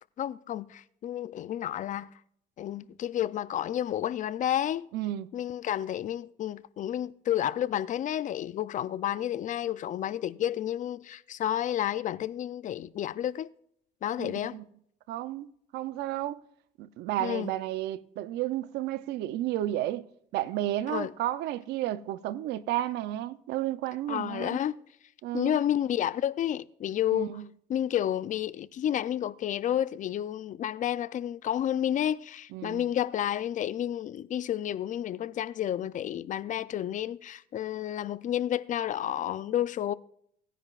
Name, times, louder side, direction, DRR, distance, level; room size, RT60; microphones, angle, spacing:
voice 1, 0.2-2.1 2.6-4.9 5.3-13.5 14.0-14.6 17.2-17.5 20.9-21.1 24.1-24.8 25.3-27.4 27.7-39.9, left 11 dB, 50° left, 0.5 m, -30 dB
voice 2, 4.9-5.3 14.2-14.6 15.1-16.4 16.8-24.6 25.2-25.6 27.1-27.5 32.5-32.8, right 14 dB, 85° right, 0.6 m, -32 dB
18.0 x 10.0 x 2.4 m
cardioid pair, 110°, 17 cm